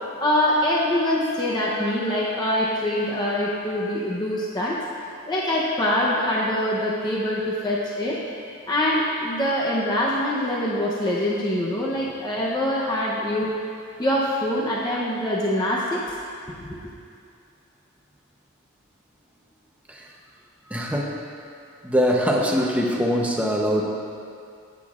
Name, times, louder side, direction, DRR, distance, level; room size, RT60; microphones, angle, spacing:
voice 1, 0.2-4.8 5.3-8.2 8.7-13.5 14.0-16.0 16.6-16.8, left 1 dB, 20° left, -5 dB, 0.8 m, -24 dB
voice 2, 20.7-21.2 21.8-23.8, equal, 5° right, -2 dB, 0.9 m, -22 dB
16.0 x 8.2 x 2.5 m, 2.4 s
head